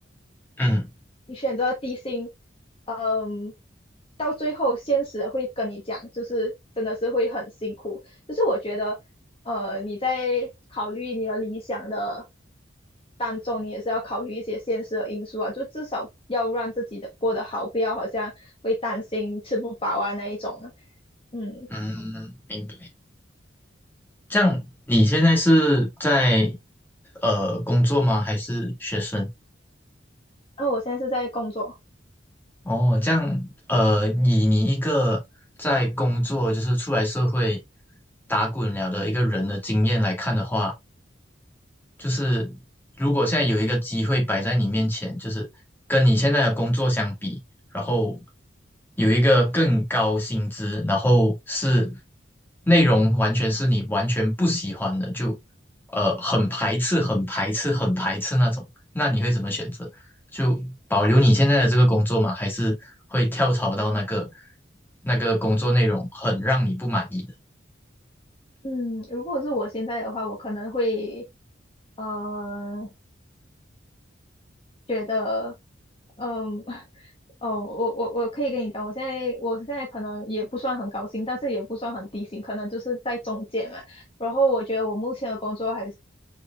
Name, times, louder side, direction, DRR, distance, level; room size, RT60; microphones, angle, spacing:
voice 1, 1.3-2.3 2.9-3.5 4.2-9.0 9.4-12.2 13.2-20.7 21.3-21.7 30.6-31.7 68.6-71.2 72.0-72.9 74.9-75.5 76.2-77.1 77.4-85.9, left 1 dB, 30° left, 1.3 m, -28 dB
voice 2, 21.7-22.9 24.3-26.6 27.2-29.3 32.6-35.2 35.6-37.6 38.3-40.7 42.0-42.6 43.0-45.5 45.9-47.4 47.7-48.2 49.0-52.0 52.7-55.4 55.9-58.6 58.9-59.9 60.3-64.3 65.0-67.3, equal, 10° left, 1.8 m, -22 dB
4.9 x 4.6 x 2.3 m
head